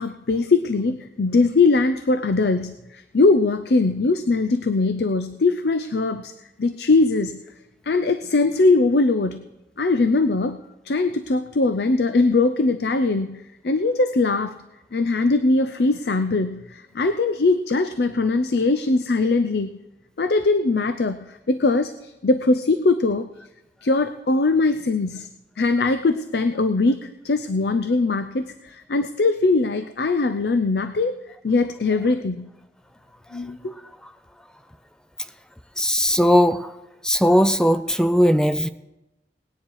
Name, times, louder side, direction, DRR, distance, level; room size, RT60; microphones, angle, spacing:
voice 1, 0.0-6.3 6.6-7.4 7.9-9.4 9.8-10.6 10.8-14.5 14.9-19.7 20.2-23.3 23.8-25.3 25.6-31.2 31.4-32.5 33.3-33.7, left 3 dB, 70° left, 10 dB, 0.6 m, -21 dB
voice 2, 35.8-36.7 37.0-38.7, equal, 5° left, 10 dB, 0.5 m, -18 dB
18.5 x 10.0 x 4.7 m, 0.96 s
head